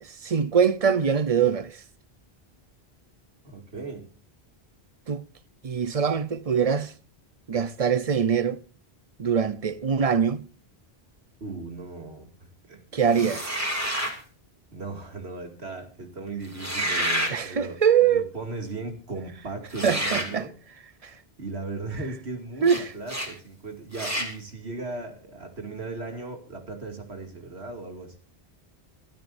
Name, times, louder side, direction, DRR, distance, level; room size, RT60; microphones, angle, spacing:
voice 1, 0.0-1.8 5.1-5.2 5.6-6.9 7.5-8.6 9.2-10.5 12.9-13.5 17.3-18.2 19.8-20.5 21.0-21.1 22.6-22.9, right 7 dB, 40° right, 0.8 m, -23 dB
voice 2, 3.4-4.1 11.4-13.3 14.7-20.5 21.4-28.2, right 3 dB, 85° right, 2.7 m, -37 dB
sound 1, 13.1-14.2 16.5-17.4 19.7-20.3 22.6-22.8 23.1-23.3 23.9-24.3, equal, 15° right, 3.0 m, -28 dB
24.0 x 12.5 x 2.7 m
omnidirectional pair, 1.1 m